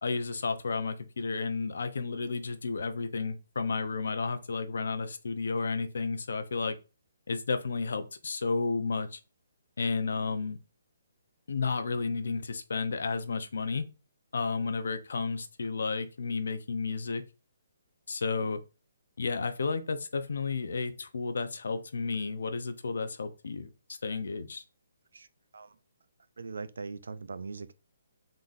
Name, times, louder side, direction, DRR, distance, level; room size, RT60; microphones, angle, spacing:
voice 1, 0.0-6.8 7.3-9.2 9.8-10.6 11.5-13.8 14.3-17.2 18.1-18.6 19.2-24.6, left 4 dB, 70° left, 0.6 m, -32 dB
voice 2, 26.4-27.7, right 4 dB, 75° right, 0.4 m, -40 dB
3.9 x 3.8 x 2.5 m
hypercardioid pair, 175°, 0 cm